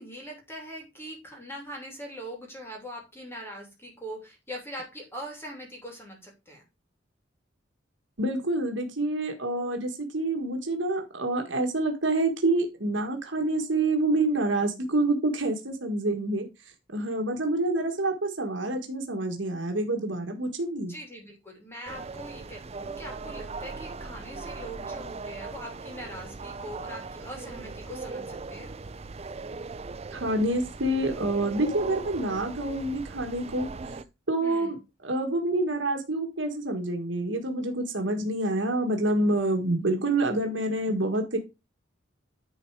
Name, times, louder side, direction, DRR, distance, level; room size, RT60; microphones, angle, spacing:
voice 1, 0.0-6.6 20.9-28.7 34.4-34.8, equal, 15° left, 1 dB, 2.8 m, -42 dB
voice 2, 8.2-16.5 16.9-20.9 30.1-33.7 34.3-34.8 35.0-41.4, right 2 dB, 75° right, 4 dB, 1.6 m, -27 dB
sound 1, 21.9-34.0, right 4 dB, 35° right, 0.5 m, -39 dB
10.0 x 4.2 x 4.7 m, 0.26 s
head